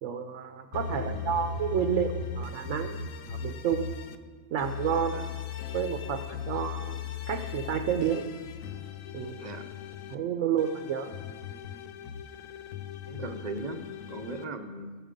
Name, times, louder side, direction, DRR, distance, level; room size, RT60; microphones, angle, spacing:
voice 1, 0.0-3.0 3.3-3.9 4.5-5.2 5.7-7.0 7.3-8.2 9.1-9.5 10.1-11.1, right 8 dB, 75° right, 7 dB, 0.9 m, -30 dB
sound 1, 0.7-4.2 4.6-10.1 10.6-14.4, left 6 dB, 85° left, 1.0 m, -38 dB
voice 2, 0.9-1.4 5.1-5.3 9.4-9.7 13.1-15.0, right 2 dB, 45° right, 7 dB, 0.6 m, -39 dB
15.0 x 6.9 x 5.1 m, 1.5 s
omnidirectional pair, 1.4 m